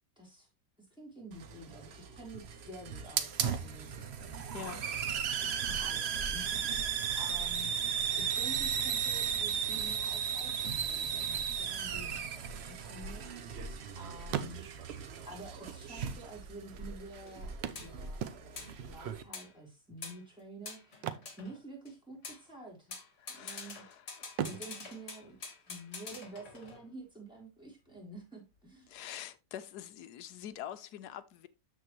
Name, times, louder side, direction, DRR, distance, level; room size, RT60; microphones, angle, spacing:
voice 1, 0.2-0.5 0.8-4.7 5.4-7.8 8.2-13.5 14.0-14.7 15.2-23.0 23.3-23.8 24.4-25.4 25.7-28.9, right 1 dB, ahead, 3.6 m, -49 dB
Hiss, 1.3-19.2, right 7 dB, 60° right, 0.7 m, -36 dB
voice 2, 4.5-4.8 5.2-5.3 23.2-24.3 28.9-31.5, left 11 dB, 70° left, 1.2 m, -45 dB
sound 1, 12.9-13.9 14.2-15.1 16.0-16.1 16.3-16.4 17.6-18.8 20.9-22.2 22.4-22.7 23.2-23.8 24.3-26.1 28.0-28.1 28.6-28.7, right 10 dB, 85° right, 1.4 m, -40 dB
sound 2, 17.3-17.4 17.7-17.9 18.5-18.8 19.3-19.6 20.0-20.2 20.6-21.9 22.2-22.4 22.9-27.0, left 4 dB, 40° left, 1.9 m, -46 dB
12.5 x 4.5 x 3.1 m
omnidirectional pair, 1.9 m